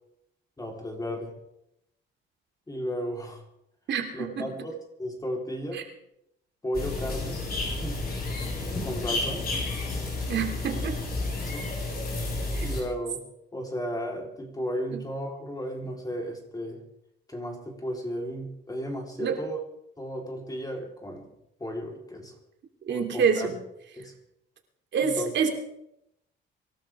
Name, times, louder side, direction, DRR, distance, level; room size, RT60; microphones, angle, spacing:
voice 1, 0.6-1.3 2.7-3.4 4.1-4.7 5.0-5.9 6.6-7.4 7.8-8.0 8.8-9.4 11.4-11.7 12.6-13.2 13.5-16.8 17.3-19.6 20.0-21.3 21.6-22.3 22.9-23.5 24.0-24.1 25.0-25.3, equal, 20° left, 1 dB, 4.1 m, -34 dB
voice 2, 3.9-4.5 5.7-5.8 10.3-11.0 12.5-12.7 14.9-15.0 19.2-19.4 22.9-23.6 24.9-25.5, right 6 dB, 65° right, 4 dB, 2.9 m, -27 dB
sound 1, 6.7-12.8, left 2 dB, 50° left, 7.7 m, -31 dB
24.5 x 13.0 x 3.7 m, 0.79 s
cardioid pair, 90°, 20 cm